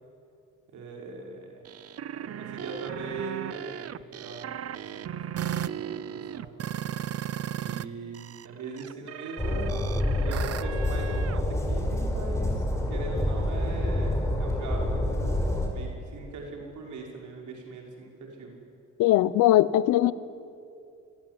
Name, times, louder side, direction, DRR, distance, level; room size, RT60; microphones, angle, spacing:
voice 1, 0.7-1.6 2.1-6.6 7.6-9.8 10.1-15.4 15.7-18.6, right 3 dB, 75° right, 0 dB, 5.7 m, -40 dB
sound 1, 1.6-7.8 8.1-11.4, right 10 dB, 55° right, 0.9 m, -36 dB
Train, 9.4-15.7, left 1 dB, 10° left, 5.8 m, -27 dB
voice 2, 19.0-20.1, left 14 dB, 90° left, 17 dB, 0.9 m, -20 dB
27.5 x 21.0 x 9.7 m, 2.5 s
cardioid pair, 90°, 30 cm